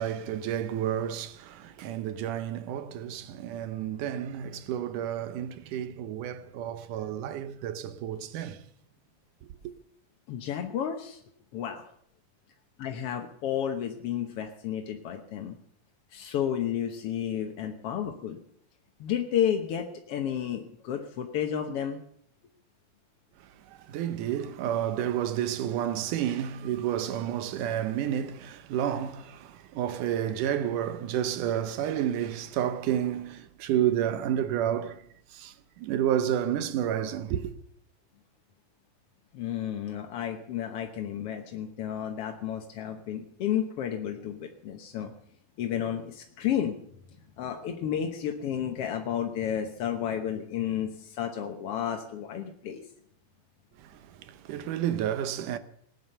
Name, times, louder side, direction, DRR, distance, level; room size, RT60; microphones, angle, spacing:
voice 1, 0.0-8.6 23.7-35.0 35.3-37.5 53.8-55.6, right 10 dB, 75° right, 2.4 m, -30 dB
voice 2, 10.3-11.2 11.5-11.9 12.8-15.6 16.1-18.4 19.0-22.0 39.3-45.1 45.6-46.8 47.4-52.8, left 9 dB, 60° left, 1.6 m, -32 dB
19.5 x 9.4 x 6.8 m
omnidirectional pair, 3.9 m